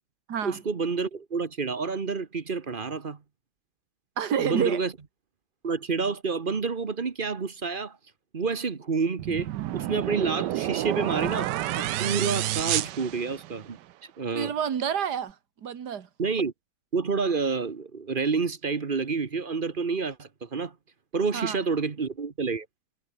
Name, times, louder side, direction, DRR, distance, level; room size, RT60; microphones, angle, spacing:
voice 1, 0.4-3.2 4.4-4.9 5.6-8.0 8.3-13.8 14.2-14.5 16.2-16.5 16.9-20.7 21.1-22.7, right 4 dB, 35° right, 1.2 m, -29 dB
voice 2, 4.2-4.8 14.3-15.4 15.6-16.1 21.3-21.6, right 8 dB, 70° right, 2.1 m, -28 dB
sound 1, 9.2-13.8, right 14 dB, 90° right, 1.3 m, -29 dB
omnidirectional pair, 1.8 m